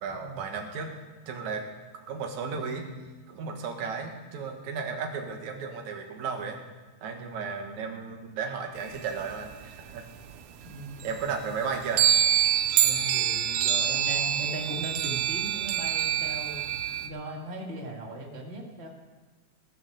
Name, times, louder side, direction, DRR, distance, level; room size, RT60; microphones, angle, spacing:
voice 1, 0.0-0.9 1.3-1.6 1.9-2.9 3.3-6.6 7.0-10.0 11.0-12.1, right 5 dB, 70° right, 3 dB, 2.8 m, -34 dB
voice 2, 7.1-7.5 10.6-11.2 12.8-16.6 17.0-18.9, right 2 dB, 25° right, -1 dB, 1.7 m, -38 dB
sound 1, 8.8-10.3 10.6-10.7 11.0-17.1, right 10 dB, 90° right, 2.3 m, -26 dB
17.5 x 6.8 x 6.9 m, 1.3 s
omnidirectional pair, 3.5 m